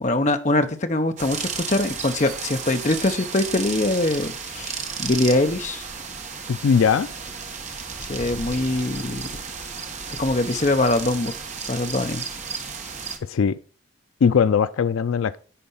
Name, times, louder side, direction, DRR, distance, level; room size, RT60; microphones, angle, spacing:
voice 1, 0.0-5.8 8.0-9.3 10.2-11.3 11.7-12.2, left 2 dB, 35° left, 0.7 m, -23 dB
sound 1, 1.2-13.2, right 5 dB, 35° right, 1.1 m, -33 dB
voice 2, 6.5-7.1 13.2-13.6 14.2-15.4, left 6 dB, 85° left, 0.4 m, -20 dB
10.0 x 4.3 x 5.5 m
head